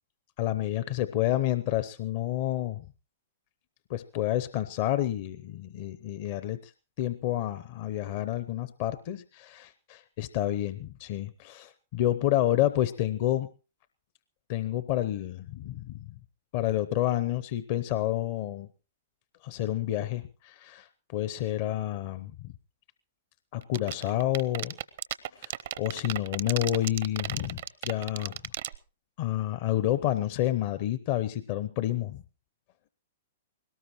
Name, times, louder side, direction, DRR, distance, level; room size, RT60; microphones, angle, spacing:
voice 1, 0.4-2.9 3.9-6.7 7.0-13.5 14.5-16.1 16.5-18.7 19.4-22.5 23.5-24.7 25.3-28.3 29.2-32.2, left 13 dB, 50° left, 13 dB, 0.7 m, -29 dB
sound 1, 23.6-28.8, right 12 dB, 65° right, 0.7 m, -33 dB
21.0 x 18.5 x 3.1 m, 0.34 s
hypercardioid pair, 115°, 0 cm